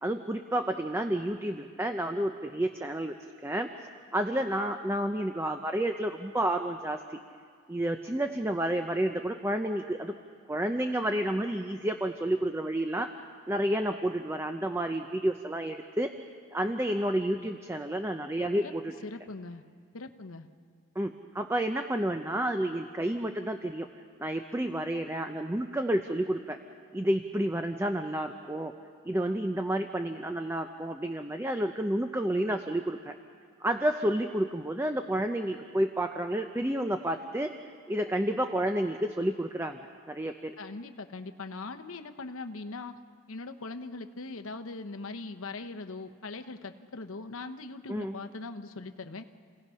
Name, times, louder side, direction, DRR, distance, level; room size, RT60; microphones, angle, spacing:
voice 1, 0.0-3.2 3.4-3.7 4.1-7.2 7.7-10.1 10.5-13.1 13.5-16.1 16.5-19.0 21.0-23.9 24.2-26.6 26.9-28.7 29.0-33.1 33.6-37.5 37.9-39.8 40.1-40.5 47.9-48.2, right 1 dB, 10° right, 6 dB, 0.6 m, -30 dB
voice 2, 19.0-19.6 19.9-20.5 40.6-42.9 43.3-49.2, left 3 dB, 65° left, 7 dB, 0.9 m, -40 dB
29.0 x 17.5 x 5.7 m, 2.1 s
head